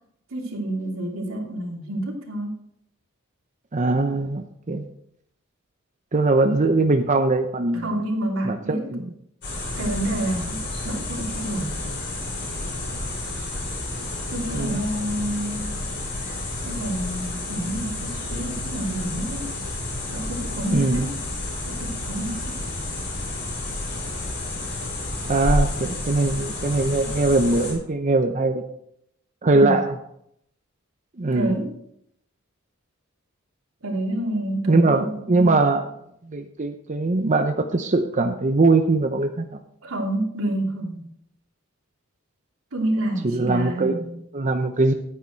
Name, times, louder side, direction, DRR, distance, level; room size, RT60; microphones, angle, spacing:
voice 1, 0.3-2.5 7.8-8.9 9.8-10.6 10.8-11.8 14.3-15.7 16.6-19.6 20.1-21.2 21.6-22.5 29.5-29.8 31.3-31.8 33.8-35.6 39.8-41.1 42.7-44.1, right 1 dB, 85° right, -1 dB, 2.9 m, -28 dB
voice 2, 3.7-4.8 6.1-8.0 8.4-9.1 14.5-14.8 20.7-21.1 25.3-28.6 29.4-29.9 31.2-31.6 34.7-35.9 36.2-39.5 43.2-44.9, right 2 dB, 35° right, 5 dB, 0.7 m, -21 dB
sound 1, 9.4-27.7, left 2 dB, 60° left, 5.0 m, -30 dB
10.0 x 9.4 x 4.5 m, 0.73 s
head